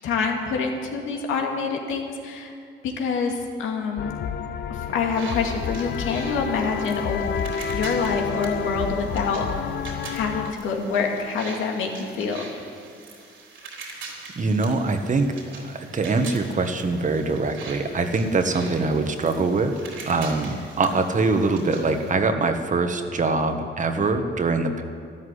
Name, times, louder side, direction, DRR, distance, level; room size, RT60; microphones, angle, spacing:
voice 1, 0.0-2.5 2.8-4.1 4.7-7.3 7.7-9.7 10.1-12.4, left 5 dB, 85° left, 1 dB, 2.3 m, -26 dB
sound 1, 4.0-10.5, left 6 dB, 60° left, 0.8 m, -30 dB
sound 2, 5.1-22.1, right 4 dB, 75° right, 3.7 m, -43 dB
voice 2, 14.3-19.8 20.1-24.8, right 3 dB, 40° right, 7 dB, 1.5 m, -23 dB
13.0 x 12.5 x 8.3 m, 2.3 s
cardioid pair, 90°, 20 cm